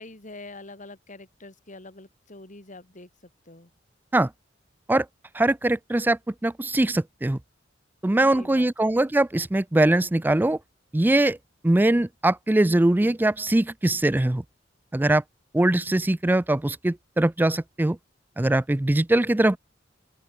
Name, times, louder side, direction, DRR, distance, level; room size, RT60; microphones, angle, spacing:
voice 1, 0.0-3.7 8.3-8.9, left 2 dB, 40° left, 3.7 m, -45 dB
voice 2, 5.3-7.4 8.0-10.6 10.9-11.4 11.6-14.4 14.9-15.2 15.5-18.0 18.4-19.6, right 1 dB, 10° right, 0.4 m, -22 dB
open air
head